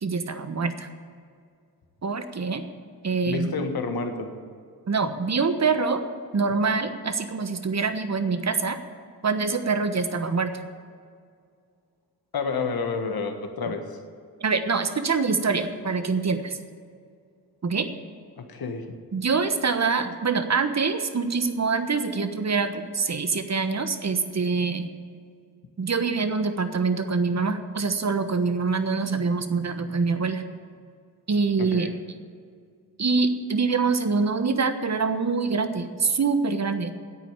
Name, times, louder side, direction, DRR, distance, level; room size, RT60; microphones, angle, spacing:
voice 1, 0.0-0.9 2.0-2.6 3.0-3.5 4.9-6.0 6.3-8.8 9.2-10.5 14.4-16.6 17.6-17.9 19.1-24.9 25.8-30.4 31.3-31.9 33.0-36.9, right 4 dB, 45° right, 9 dB, 1.2 m, -25 dB
voice 2, 3.3-4.3 12.3-14.0 18.4-18.9 31.6-31.9, left 4 dB, 65° left, 6 dB, 1.6 m, -30 dB
10.0 x 8.4 x 8.9 m, 2.1 s
cardioid pair, 55°, 39 cm